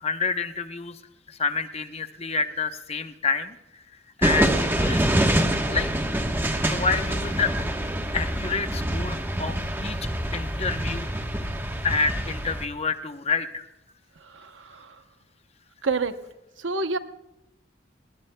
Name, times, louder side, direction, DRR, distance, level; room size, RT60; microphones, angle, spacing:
voice 1, 0.0-1.0 1.3-3.6 4.2-5.0 5.7-5.9 6.7-7.5 8.1-9.5 9.8-10.0 10.3-11.1 11.8-13.7, left 4 dB, 35° left, 8 dB, 0.8 m, -28 dB
sound 1, 4.2-12.7, right 1 dB, 10° right, 1.1 m, -26 dB
voice 2, 14.2-15.0 15.8-16.2 16.6-17.0, right 4 dB, 85° right, 9 dB, 0.9 m, -29 dB
29.5 x 20.0 x 2.2 m, 0.94 s
head